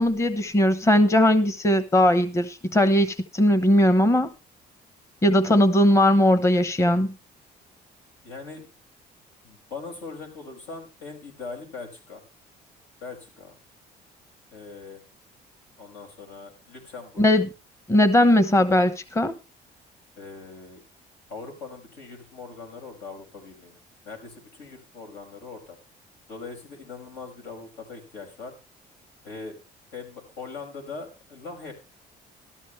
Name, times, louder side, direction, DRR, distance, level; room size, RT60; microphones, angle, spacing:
voice 1, 0.0-4.3 5.2-7.1 17.2-17.5 17.9-19.4, left 1 dB, 15° left, 1.0 m, -19 dB
voice 2, 8.2-8.7 9.4-12.2 13.0-13.5 14.5-15.0 15.8-17.3 20.2-20.8 21.3-23.8 24.0-25.8 26.3-28.5 29.2-29.6 29.9-31.7, left 4 dB, 85° left, 6.1 m, -40 dB
13.5 x 13.0 x 3.2 m
cardioid pair, 110°, 17 cm